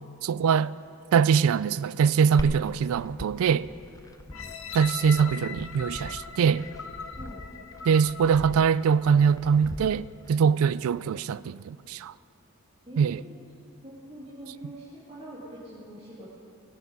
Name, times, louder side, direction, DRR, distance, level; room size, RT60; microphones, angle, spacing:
voice 1, 0.2-0.7 1.1-3.7 4.7-6.7 7.9-12.1 13.0-13.2, right 6 dB, 75° right, 0.3 m, -23 dB
Glass, 2.4-10.3, left 1 dB, 15° left, 0.4 m, -41 dB
sound 1, 4.3-9.3 9.8-9.9, left 6 dB, 70° left, 0.8 m, -41 dB
voice 2, 12.9-13.4 13.8-16.4, right 1 dB, 25° right, 2.5 m, -44 dB
20.5 x 8.5 x 5.3 m
head